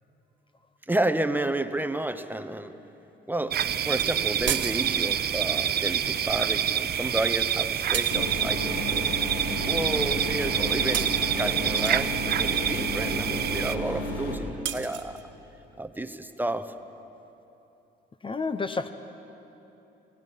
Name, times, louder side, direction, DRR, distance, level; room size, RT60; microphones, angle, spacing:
voice 1, 0.9-2.8 3.3-9.1 9.6-11.1 11.4-15.2 15.8-16.7, right 1 dB, 10° right, 10 dB, 0.9 m, -31 dB
sound 1, 3.5-13.8, right 9 dB, 55° right, 0.7 m, -27 dB
sound 2, 3.6-3.7 4.0-4.1 4.5-5.2 7.9-8.3 9.9-10.0 10.4-10.6 10.9-12.1 14.7-15.2, right 10 dB, 70° right, 1.1 m, -34 dB
sound 3, 8.1-14.3, left 1 dB, 85° left, 3.6 m, -32 dB
voice 2, 18.2-18.9, left 4 dB, 25° left, 11 dB, 0.7 m, -29 dB
29.0 x 17.5 x 5.6 m, 3.0 s
cardioid pair, 90°, 20 cm